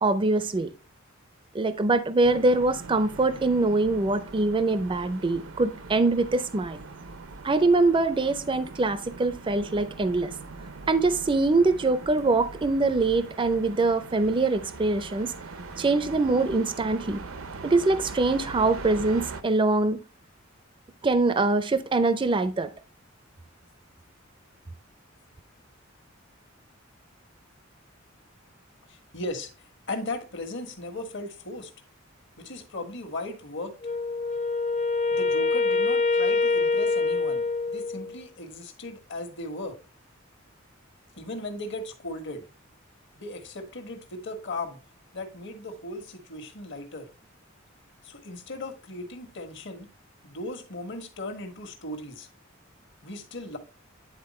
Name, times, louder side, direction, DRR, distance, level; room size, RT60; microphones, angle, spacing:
voice 1, 0.0-0.7 1.5-6.8 7.4-10.3 10.9-15.3 15.8-17.2 17.6-20.0 21.0-22.7, right 3 dB, 25° right, 0.5 m, -23 dB
sound 1, 2.2-19.4, right 3 dB, 90° right, 0.8 m, -41 dB
voice 2, 28.9-29.5 29.9-31.7 32.4-33.7 35.1-39.8 41.2-42.5 43.2-44.8 45.1-47.1 48.0-49.9 50.2-52.3 53.0-53.6, left 2 dB, 60° left, 1.5 m, -37 dB
Wind instrument woodwind instrument, 33.8-38.2, left 3 dB, 35° left, 0.5 m, -25 dB
9.7 x 4.1 x 4.2 m
head